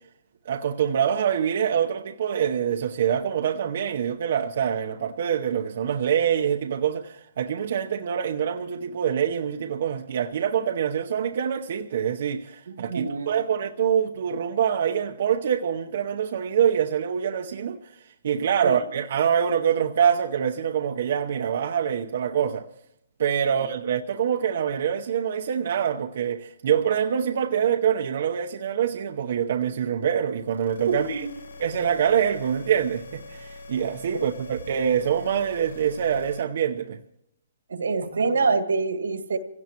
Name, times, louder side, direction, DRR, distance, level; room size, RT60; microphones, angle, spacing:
voice 1, 0.5-22.7 23.2-31.3 31.6-37.0, right 8 dB, 60° right, 0.9 m, -25 dB
voice 2, 12.7-13.3 18.6-18.8 23.5-23.7 31.0-31.3 37.7-39.4, right 4 dB, 90° right, 1.9 m, -26 dB
sound 1, 30.4-36.4, left 2 dB, 80° left, 1.3 m, -43 dB
26.0 x 17.0 x 3.0 m
hypercardioid pair, 150°, 0 cm